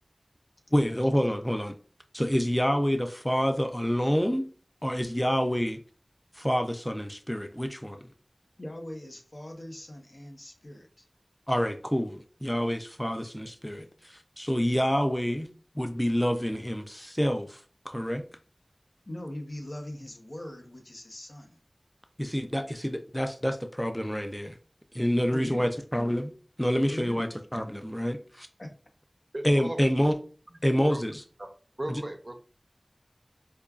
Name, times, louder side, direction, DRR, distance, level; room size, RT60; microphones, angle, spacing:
voice 1, 0.7-1.8 2.1-4.5 4.8-5.8 6.4-8.1 11.5-15.5 15.8-18.2 22.2-24.6 24.9-26.3 26.6-28.5 29.4-30.2 30.6-31.2 31.9-32.0, equal, 10° left, 0.4 m, -27 dB
voice 2, 8.6-11.1 19.1-21.6 25.3-25.7 26.9-27.3 28.6-28.7, left 1 dB, 65° left, 0.8 m, -41 dB
voice 3, 29.3-29.9 30.9-31.0 31.4-31.5 31.8-32.4, right 1 dB, 50° right, 0.6 m, -36 dB
5.0 x 2.3 x 2.3 m
wide cardioid pair, 45°, 0 cm